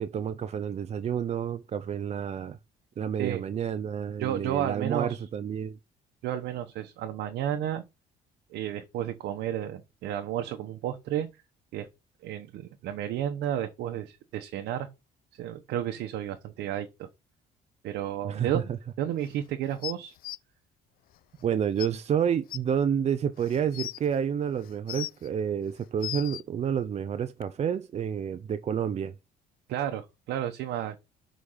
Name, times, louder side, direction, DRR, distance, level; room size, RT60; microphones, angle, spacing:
voice 1, 0.0-2.6 3.0-5.8 18.2-18.6 21.4-29.1, right 8 dB, 40° right, 0.6 m, -29 dB
voice 2, 4.2-5.2 6.2-7.8 8.5-11.3 11.7-11.9 12.2-14.9 15.3-17.1 17.8-18.7 19.0-20.2 29.7-31.0, right 11 dB, 80° right, 1.0 m, -32 dB
sound 1, 19.8-20.4 21.4-21.5 21.8-21.9 22.5-22.6 23.4-24.0 24.6-25.3 25.8-26.4 27.4-27.5, left 14 dB, 60° left, 0.5 m, -36 dB
6.5 x 5.0 x 5.6 m
cardioid pair, 110°, 17 cm